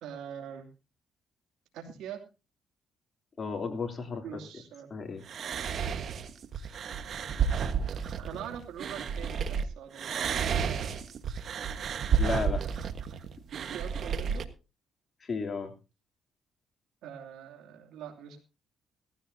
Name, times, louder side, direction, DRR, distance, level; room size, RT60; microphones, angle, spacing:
voice 1, 0.0-0.7 1.7-2.2 4.2-4.9 5.6-5.9 8.2-10.9 13.7-14.5 17.0-18.4, right 8 dB, 90° right, 3 dB, 2.8 m, -43 dB
voice 2, 3.4-4.4 4.9-5.2 12.2-12.6 15.2-15.7, left 5 dB, 40° left, 5 dB, 3.4 m, -33 dB
sound 1, 5.3-9.6 9.9-14.4, right 7 dB, 60° right, 1.4 m, -31 dB
17.5 x 14.5 x 2.8 m, 0.30 s
cardioid pair, 90°, 0 cm